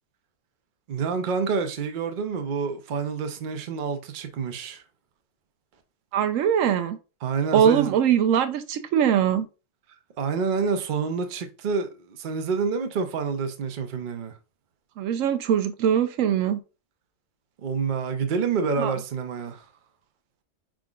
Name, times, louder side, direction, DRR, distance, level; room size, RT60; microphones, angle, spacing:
voice 1, 0.9-4.8 7.2-7.9 10.2-14.4 17.6-19.7, right 5 dB, 50° right, 0.7 m, -28 dB
voice 2, 6.1-7.0 7.5-9.5 15.0-16.6 18.8-19.0, right 9 dB, 85° right, 1.0 m, -22 dB
4.9 x 3.7 x 2.3 m
omnidirectional pair, 1.3 m